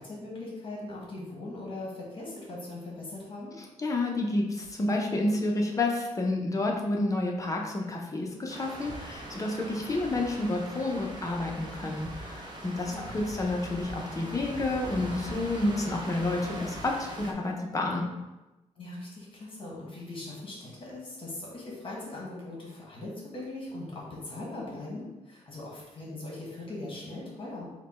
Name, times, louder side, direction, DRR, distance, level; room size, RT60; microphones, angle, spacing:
voice 1, 0.0-3.5 12.7-13.1 18.8-27.6, left 2 dB, 40° left, -4 dB, 1.3 m, -40 dB
voice 2, 3.6-18.0, left 2 dB, 25° left, 0 dB, 0.7 m, -30 dB
sound 1, 8.5-17.3, right 1 dB, 35° right, 0.7 m, -41 dB
4.9 x 2.2 x 4.2 m, 1.0 s
wide cardioid pair, 125°, 13 cm